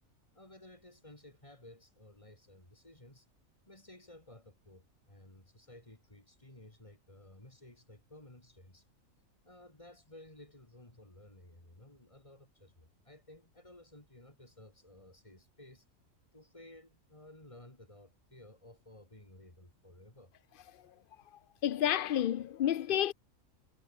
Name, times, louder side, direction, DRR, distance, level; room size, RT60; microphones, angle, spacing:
voice 1, 0.3-3.3 3.7-8.8 9.4-15.8 16.3-20.3, left 1 dB, 25° left, 4.0 m, -56 dB
voice 2, 21.6-23.1, left 11 dB, 60° left, 0.5 m, -30 dB
omnidirectional pair, 1.4 m